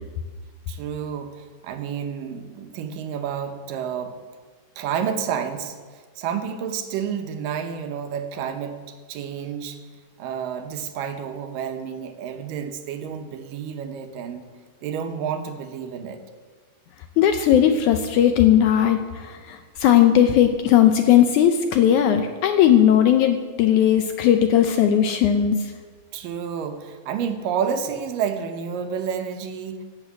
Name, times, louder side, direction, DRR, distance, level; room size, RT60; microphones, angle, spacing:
voice 1, 0.7-4.2 4.8-8.8 9.1-9.8 10.2-14.4 14.8-16.2 26.1-29.8, right 7 dB, 75° right, 6 dB, 2.6 m, -30 dB
voice 2, 17.2-25.7, left 10 dB, 75° left, 7 dB, 1.8 m, -18 dB
12.5 x 8.2 x 8.2 m, 1.5 s
omnidirectional pair, 4.0 m